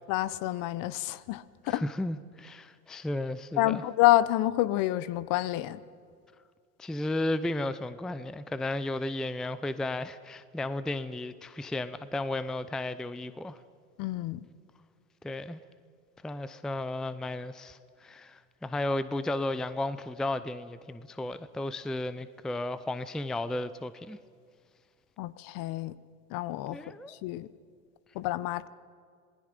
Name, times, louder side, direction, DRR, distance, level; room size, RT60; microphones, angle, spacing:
voice 1, 0.1-1.8 3.6-5.8 14.0-14.5 25.2-25.9 26.3-26.8 27.1-27.5 28.1-28.7, left 16 dB, 50° left, 18 dB, 0.9 m, -28 dB
voice 2, 1.7-3.8 6.8-13.6 15.2-15.6 16.2-24.2 26.7-27.2, left 2 dB, ahead, 14 dB, 0.5 m, -34 dB
27.0 x 20.0 x 5.3 m, 2.2 s
hypercardioid pair, 100°, 44 cm